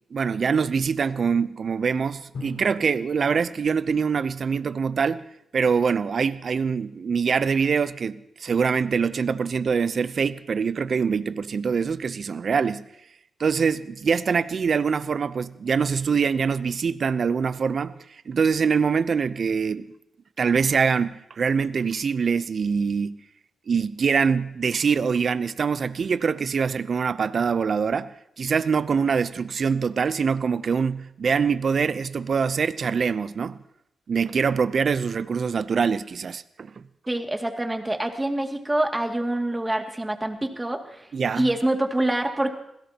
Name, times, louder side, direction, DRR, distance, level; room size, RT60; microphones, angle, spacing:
voice 1, 0.1-5.2 5.5-12.8 13.4-17.9 18.3-19.9 20.4-23.2 23.7-33.6 34.1-36.8 41.1-41.5, right 6 dB, 60° right, 15 dB, 0.6 m, -24 dB
Drum, 2.3-5.0, left 5 dB, 75° left, 4.0 m, -44 dB
voice 2, 37.1-41.1 41.4-42.5, right 1 dB, 15° right, 3 dB, 2.3 m, -26 dB
25.5 x 16.5 x 2.9 m, 0.80 s
cardioid pair, 55°, 0 cm